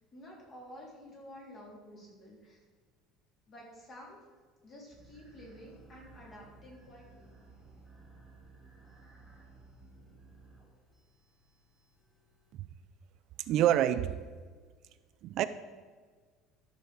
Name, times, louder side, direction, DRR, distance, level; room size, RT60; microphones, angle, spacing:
voice 1, 0.1-2.6 3.5-4.2 4.6-7.4, equal, 35° left, 3.6 m, -51 dB
sound 1, 4.9-12.5, right 3 dB, 5° left, 3.4 m, -57 dB
voice 2, 13.4-14.2 15.2-15.5, right 12 dB, 55° right, 0.4 m, -27 dB
13.5 x 6.4 x 4.6 m
cardioid pair, 145°, 0 cm